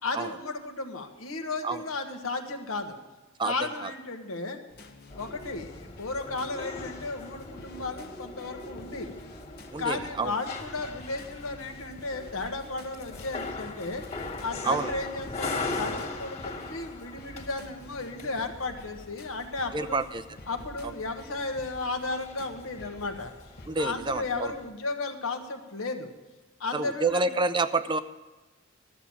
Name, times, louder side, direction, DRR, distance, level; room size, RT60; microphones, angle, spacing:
voice 1, 0.0-3.0 3.4-4.6 5.1-9.2 9.8-14.0 14.4-20.0 20.5-23.3 23.8-26.1 26.6-27.3, left 3 dB, 75° left, 5 dB, 1.3 m, -34 dB
sound 1, 4.7-23.7, left 2 dB, 50° left, 1.0 m, -51 dB
sound 2, 5.1-24.7, left 3 dB, 35° left, 1.8 m, -40 dB
voice 2, 9.7-10.3 14.6-14.9 19.7-20.2 20.8-20.9 23.7-24.5 26.7-28.0, right 3 dB, 25° right, 11 dB, 0.5 m, -28 dB
13.0 x 7.2 x 7.5 m, 1.2 s
head